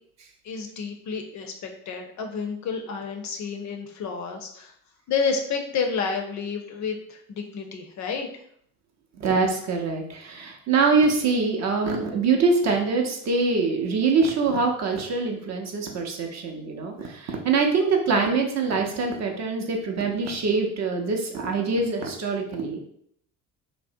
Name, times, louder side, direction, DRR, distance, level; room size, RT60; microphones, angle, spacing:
voice 1, 0.4-4.7 5.1-8.4, left 5 dB, 40° left, 4 dB, 0.5 m, -30 dB
voice 2, 9.2-22.8, right 4 dB, 40° right, 2 dB, 0.6 m, -24 dB
2.6 x 2.0 x 2.5 m, 0.68 s
hypercardioid pair, 55°, 44 cm